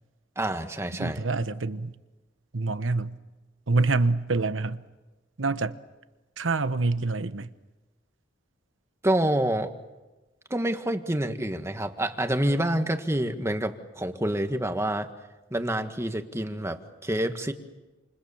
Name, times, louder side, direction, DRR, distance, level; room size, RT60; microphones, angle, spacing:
voice 1, 0.3-1.2 9.0-9.7 10.5-15.1 15.5-17.5, right 1 dB, 15° right, 1.7 m, -27 dB
voice 2, 1.0-1.9 2.5-3.2 3.7-4.8 5.4-5.8 6.4-7.5, right 3 dB, 80° right, 1.1 m, -26 dB
28.5 x 27.5 x 7.2 m
head